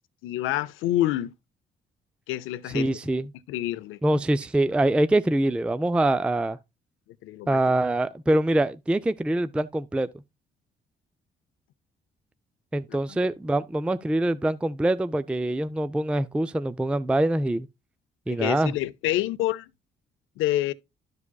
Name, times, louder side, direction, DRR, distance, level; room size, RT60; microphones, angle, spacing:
voice 1, 0.2-1.3 2.3-2.9 3.5-4.0 7.2-7.6 12.9-13.0 18.3-19.7 20.4-20.7, left 14 dB, 90° left, 0.5 m, -27 dB
voice 2, 2.7-3.3 4.0-6.6 7.5-10.1 12.7-17.7 18.3-18.7, right 1 dB, 5° right, 0.3 m, -24 dB
12.5 x 4.8 x 2.2 m
cardioid pair, 90°, 20 cm